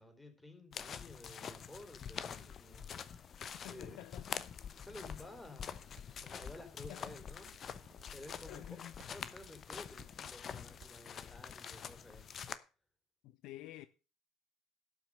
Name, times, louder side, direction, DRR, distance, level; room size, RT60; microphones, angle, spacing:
voice 1, 0.0-2.9 3.7-4.0 4.9-5.9 6.2-7.5 8.1-12.3, left 1 dB, 5° left, 3.9 m, -53 dB
sound 1, 0.7-12.6, left 7 dB, 40° left, 0.9 m, -46 dB
voice 2, 3.6-4.6 6.9-7.2 8.5-9.1 13.2-13.9, left 15 dB, 60° left, 0.5 m, -50 dB
sound 2, 4.8-5.7 6.0-11.2, right 10 dB, 50° right, 0.8 m, -63 dB
12.0 x 6.1 x 6.6 m
figure-of-eight pair, 60°, 0 cm